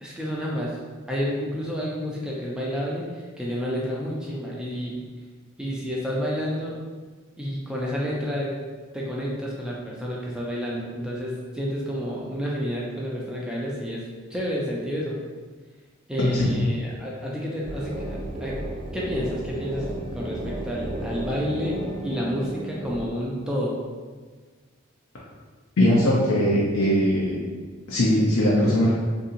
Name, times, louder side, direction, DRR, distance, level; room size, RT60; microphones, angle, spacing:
voice 1, 0.0-0.7 1.1-3.0 3.4-5.0 5.6-6.8 7.4-8.5 8.9-14.0 14.3-15.2 16.1-18.6 18.9-23.8, equal, 5° right, -5 dB, 0.4 m, -30 dB
voice 2, 16.2-16.5 25.8-27.4 27.9-28.9, left 1 dB, 80° left, -6 dB, 0.5 m, -20 dB
sound 1, 17.6-23.0, right 1 dB, 40° right, 0.9 m, -33 dB
2.7 x 2.7 x 2.5 m, 1.5 s
head